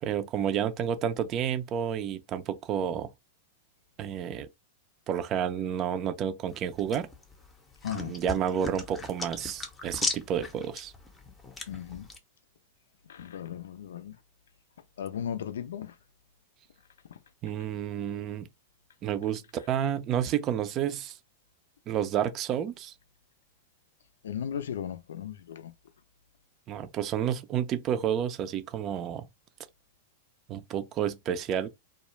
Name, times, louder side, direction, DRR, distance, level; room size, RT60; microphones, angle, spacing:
voice 1, 0.0-3.1 4.0-4.5 5.1-7.1 8.0-10.9 17.4-18.5 19.0-21.1 21.9-22.9 26.7-29.3 30.5-31.7, right 9 dB, 35° right, 0.4 m, -30 dB
sound 1, 6.5-12.2, left 3 dB, 15° left, 0.7 m, -38 dB
voice 2, 7.8-8.2 11.7-12.1 13.0-14.2 15.0-16.0 17.1-17.2 24.2-25.7, left 9 dB, 80° left, 0.4 m, -36 dB
2.3 x 2.0 x 3.0 m
hypercardioid pair, 110°, 0 cm